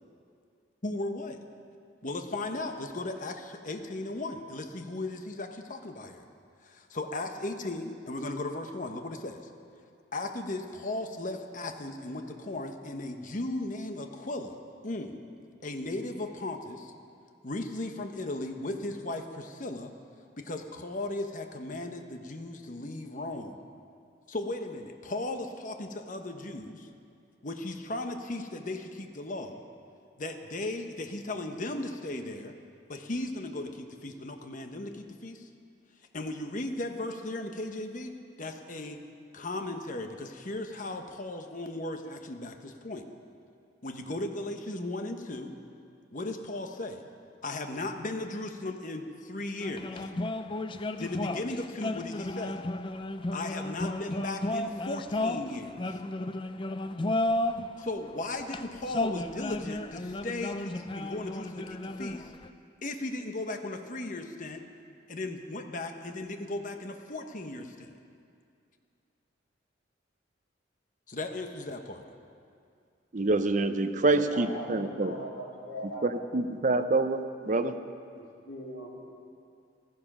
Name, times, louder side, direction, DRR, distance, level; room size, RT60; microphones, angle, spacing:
voice 1, 0.8-1.4 2.0-6.2 6.6-9.5 10.1-14.6 14.8-15.2 15.6-16.9 17.4-19.9 20.4-23.6 24.3-26.9 27.4-29.6 30.2-32.5 32.9-35.5 36.1-39.0 39.3-43.0 43.8-45.5 46.1-47.0 47.4-50.1 51.0-52.6 53.3-56.0 57.8-62.3 62.8-64.6 65.1-67.9 71.1-72.0, left 2 dB, 40° left, 6 dB, 1.0 m, -36 dB
sound 1, 49.6-57.7 58.4-62.5, left 2 dB, 25° left, 0.4 m, -33 dB
voice 2, 73.1-75.1 76.0-77.7, right 2 dB, 40° right, 9 dB, 0.7 m, -26 dB
voice 3, 74.1-76.2 78.1-79.0, equal, 75° left, -4 dB, 3.8 m, -41 dB
15.0 x 14.0 x 6.1 m, 2.4 s
head